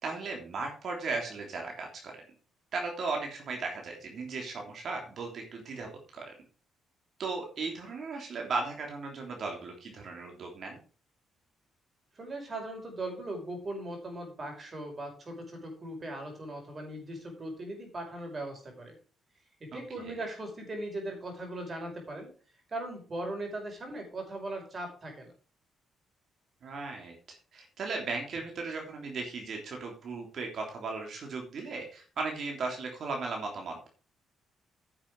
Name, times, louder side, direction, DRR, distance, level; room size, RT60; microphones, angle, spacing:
voice 1, 0.0-2.2 2.7-6.3 7.2-10.8 19.7-20.1 26.6-27.1 27.5-33.9, right 3 dB, 60° right, 1 dB, 3.3 m, -36 dB
voice 2, 12.2-19.0 19.7-22.3 22.7-25.3, right 1 dB, 35° right, 3 dB, 5.2 m, -39 dB
10.5 x 7.4 x 4.8 m, 0.37 s
cardioid pair, 90°, 0 cm